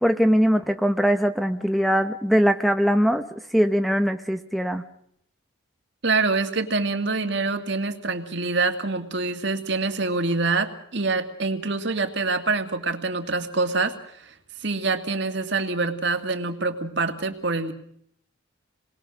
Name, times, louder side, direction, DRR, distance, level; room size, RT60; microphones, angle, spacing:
voice 1, 0.0-3.2 3.5-4.8, equal, ahead, 8 dB, 0.9 m, -21 dB
voice 2, 6.0-14.3 14.6-17.7, right 3 dB, 55° right, 7 dB, 2.2 m, -25 dB
28.5 x 21.0 x 6.4 m, 0.70 s
head